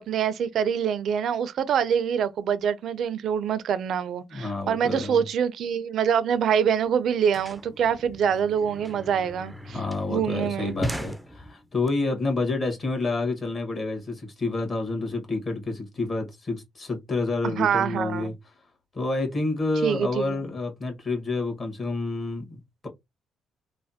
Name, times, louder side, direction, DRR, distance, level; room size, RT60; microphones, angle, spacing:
voice 1, 0.0-9.8 10.1-10.7 17.4-18.3 19.8-20.4, right 8 dB, 70° right, 0.4 m, -25 dB
voice 2, 4.3-5.2 9.7-18.3 18.9-22.9, left 3 dB, 35° left, 1.4 m, -29 dB
sound 1, 6.4-6.5 6.7-11.9, equal, 5° right, 0.4 m, -38 dB
3.2 x 2.1 x 2.7 m
cardioid pair, 90°, 0 cm